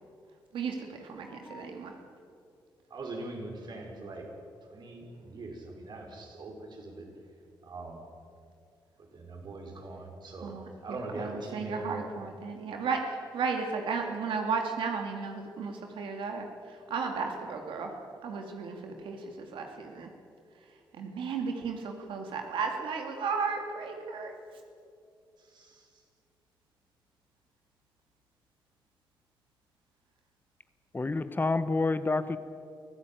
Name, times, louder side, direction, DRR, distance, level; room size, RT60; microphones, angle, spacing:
voice 1, 0.5-1.9 10.4-17.9 18.2-20.1 20.9-24.3, right 5 dB, 85° right, 3 dB, 2.4 m, -34 dB
voice 2, 1.2-1.7 30.9-32.4, left 3 dB, 25° left, 12 dB, 1.0 m, -29 dB
voice 3, 2.9-4.3 4.7-7.1 7.6-8.0 9.0-12.1 25.4-26.0, right 2 dB, 60° right, 1 dB, 5.3 m, -42 dB
24.0 x 15.0 x 9.1 m, 2.4 s
cardioid pair, 85°, 8 cm